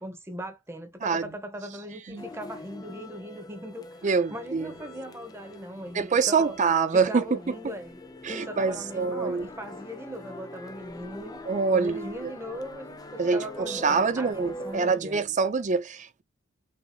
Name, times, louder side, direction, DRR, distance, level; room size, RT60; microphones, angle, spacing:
voice 1, 0.0-6.6 6.9-8.0 8.3-11.4 11.7-15.2, equal, 15° right, 1.0 m, -39 dB
sound 1, 2.2-15.0, left 1 dB, 20° left, 0.5 m, -43 dB
voice 2, 4.0-4.7 5.9-7.7 8.2-9.5 11.5-12.3 13.2-16.2, right 5 dB, 40° right, 0.5 m, -25 dB
5.6 x 2.9 x 2.3 m
head